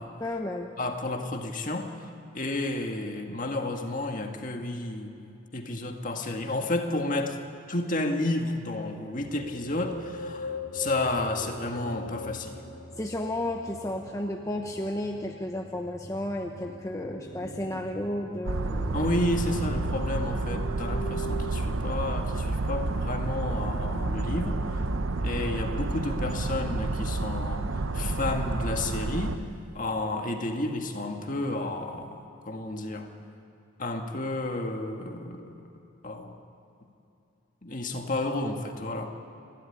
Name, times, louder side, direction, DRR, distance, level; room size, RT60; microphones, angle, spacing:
voice 1, 0.2-0.7 13.0-19.0, left 1 dB, 15° left, 2 dB, 0.9 m, -33 dB
voice 2, 0.8-1.9 2.3-5.1 5.5-7.4 7.7-12.6 18.9-24.8 25.2-27.6 27.9-29.4 29.7-33.1 33.8-35.6 36.0-36.4 37.6-39.1, left 2 dB, 40° left, 3 dB, 1.9 m, -31 dB
sound 1, 9.2-25.2, equal, 65° left, 2.8 m, -42 dB
sound 2, 18.4-29.4, right 2 dB, 80° right, 0.9 m, -30 dB
29.0 x 12.5 x 9.9 m, 2.8 s
head